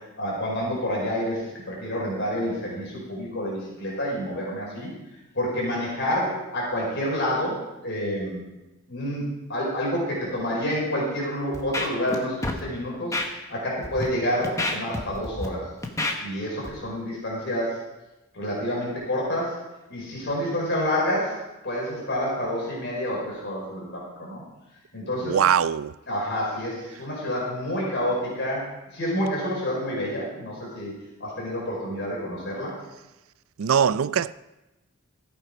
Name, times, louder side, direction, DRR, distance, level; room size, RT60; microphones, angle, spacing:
voice 1, 0.2-4.9 5.3-8.4 8.9-13.1 13.5-15.6 16.2-17.8 18.3-19.6 19.9-21.4 21.6-24.4 24.9-25.4 26.1-28.6 28.9-30.9 31.2-32.7, equal, 55° left, 5.1 m, -28 dB
Scratching (performance technique), 11.5-12.2 12.4-12.6 13.1-13.3 13.8-14.0 14.4-15.5 15.8-16.1 16.6-16.8, left 2 dB, 15° left, 1.2 m, -28 dB
voice 2, 25.2-25.9 33.6-34.3, right 8 dB, 70° right, 0.4 m, -21 dB
14.5 x 8.6 x 5.1 m
head